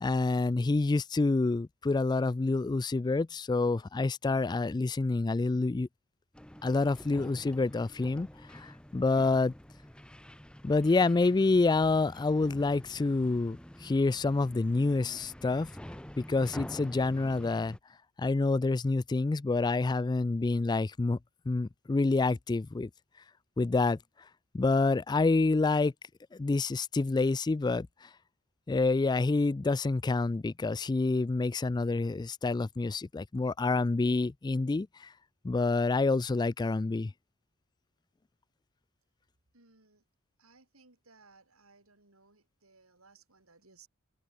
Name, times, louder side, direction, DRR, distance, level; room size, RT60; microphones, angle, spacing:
voice 1, 0.0-5.9 6.6-8.3 8.5-9.5 10.6-15.7 16.2-17.8 18.2-21.2 21.5-22.9 23.6-24.0 24.5-25.9 26.3-28.1 28.7-35.1 35.4-37.1, left 3 dB, 20° left, 0.3 m, -28 dB
sound 1, 6.3-17.8, equal, 5° left, 0.7 m, -48 dB
voice 2, 39.5-40.0 40.4-43.9, right 4 dB, 90° right, 5.1 m, -61 dB
head